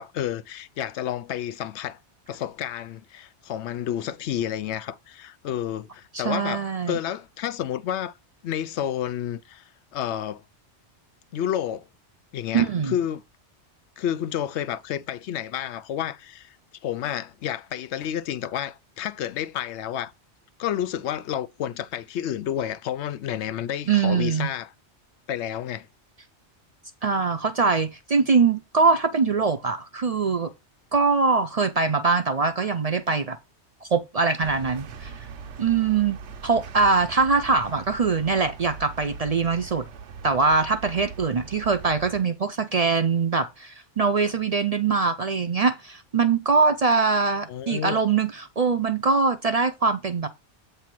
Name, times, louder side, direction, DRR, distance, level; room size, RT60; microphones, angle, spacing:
voice 1, 0.0-2.0 2.3-8.1 8.4-10.4 11.3-11.9 12.3-13.2 14.0-16.6 16.8-20.1 20.6-24.7 25.3-25.9 47.5-48.0, left 10 dB, 75° left, 0.8 m, -30 dB
voice 2, 6.1-7.0 12.5-12.9 23.9-24.5 27.0-30.5 30.9-33.4 33.8-35.1 35.6-36.2 36.4-39.8 40.2-50.3, right 4 dB, 45° right, 0.5 m, -23 dB
sound 1, 34.4-42.2, right 6 dB, 80° right, 1.1 m, -41 dB
8.3 x 3.4 x 5.9 m
omnidirectional pair, 1.2 m